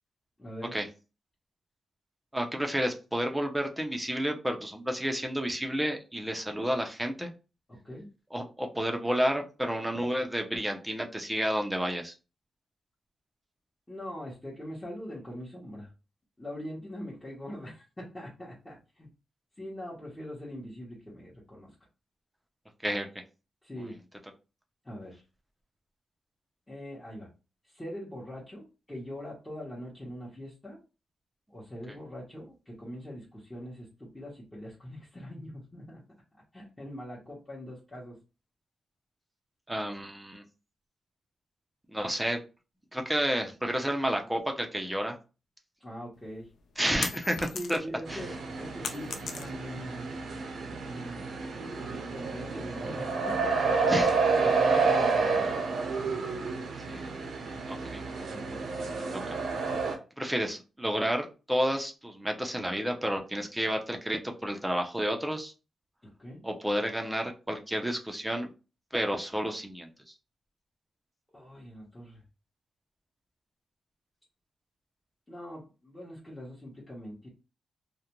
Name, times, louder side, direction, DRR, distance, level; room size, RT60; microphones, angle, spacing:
voice 1, 0.4-0.8 7.8-8.1 13.9-15.9 16.4-19.1 19.6-21.7 23.6-24.0 24.8-25.2 26.7-27.3 27.6-30.8 31.5-36.0 36.5-38.2 45.8-46.5 47.5-50.1 50.9-51.2 52.1-53.8 54.2-55.5 58.3-58.7 66.2-66.4 71.3-72.2 75.3-77.3, equal, 15° left, -7 dB, 0.9 m, -42 dB
voice 2, 2.3-7.3 8.3-12.1 22.8-23.1 39.7-40.4 41.9-42.4 42.9-45.2 46.8-47.8 48.1-48.2 53.9-54.1 56.9-57.1 57.7-58.0 58.9-59.4 60.2-65.5 66.4-68.5 68.9-70.1, equal, 5° right, 3 dB, 0.6 m, -31 dB
sound 1, 46.2-48.0 48.4-49.8, left 5 dB, 80° left, 0.4 m, -37 dB
sound 2, 48.1-60.0, right 4 dB, 80° right, 0.6 m, -29 dB
2.4 x 2.1 x 2.9 m, 0.32 s
cardioid pair, 95°, 0 cm